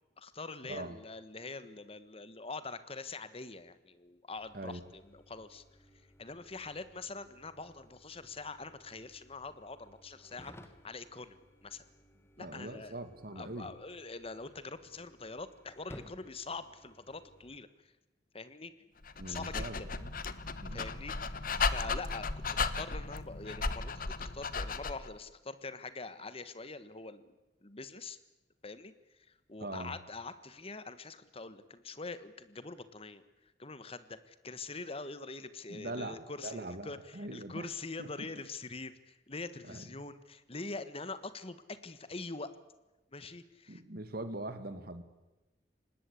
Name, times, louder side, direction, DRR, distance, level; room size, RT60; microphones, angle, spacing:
voice 1, 0.2-5.6 6.2-10.5 10.8-11.8 12.4-13.0 13.3-17.7 18.3-18.7 19.3-19.9 20.7-27.3 27.6-28.2 28.6-33.2 33.6-42.5 43.1-43.8, left 3 dB, 35° left, 13 dB, 1.4 m, -44 dB
sound 1, 4.4-17.6, equal, 15° left, 1.6 m, -58 dB
voice 2, 12.4-13.7 19.2-20.1 20.6-20.9 29.6-30.0 35.7-37.7 38.0-38.1 39.6-40.1 43.7-45.0, right 2 dB, 60° right, 10 dB, 2.1 m, -42 dB
Dog, 19.0-25.1, left 4 dB, 55° left, 1.2 m, -35 dB
25.0 x 19.5 x 8.5 m, 1.0 s
head